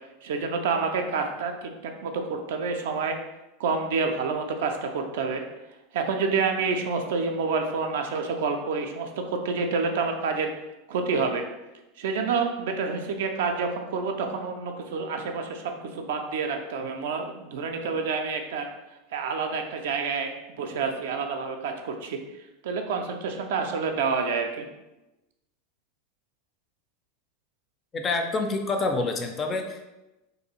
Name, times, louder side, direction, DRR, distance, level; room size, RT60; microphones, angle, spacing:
voice 1, 0.2-3.2 3.6-5.4 5.9-10.5 10.9-11.4 12.0-18.7 19.1-22.2 22.6-24.7, right 4 dB, 60° right, 4 dB, 0.3 m, -28 dB
voice 2, 27.9-29.9, left 3 dB, 25° left, 4 dB, 0.4 m, -27 dB
2.6 x 2.3 x 2.8 m, 1.0 s
figure-of-eight pair, 80°, 0 cm